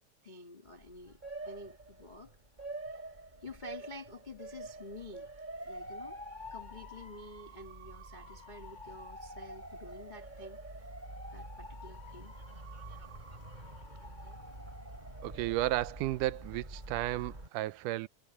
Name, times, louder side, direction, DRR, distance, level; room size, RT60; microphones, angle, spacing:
voice 1, 0.2-1.2 1.4-2.4 3.4-5.3 5.6-6.2 6.5-10.6 11.3-12.4, left 2 dB, 70° left, 0.4 m, -49 dB
Motor vehicle (road) / Siren, 0.7-17.5, right 1 dB, 15° right, 4.8 m, -46 dB
voice 2, 15.2-18.1, right 16 dB, 80° right, 2.0 m, -33 dB
omnidirectional pair, 3.8 m